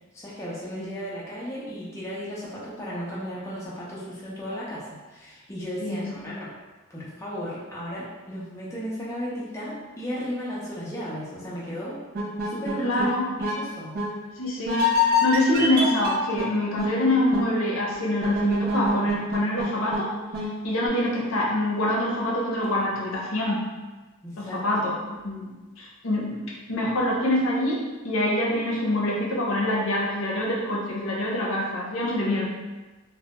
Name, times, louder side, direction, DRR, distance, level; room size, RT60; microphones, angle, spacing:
voice 1, 0.1-6.5 6.9-12.0 12.4-13.0 13.4-14.0 24.2-24.9, equal, 15° left, -8 dB, 0.4 m, -35 dB
voice 2, 5.8-6.2 12.8-13.4 14.4-20.1 20.6-23.7 24.4-25.0 25.2-25.5 25.8-26.4 26.7-32.5, left 1 dB, 80° left, -3 dB, 0.6 m, -25 dB
sound 1, 12.1-13.1 13.4-13.6 13.9-14.1 14.7-16.5 16.8-16.9 17.3-17.5 18.2-20.0 20.3-20.5, left 2 dB, 45° right, 0.4 m, -25 dB
2.2 x 2.0 x 2.8 m, 1.2 s
head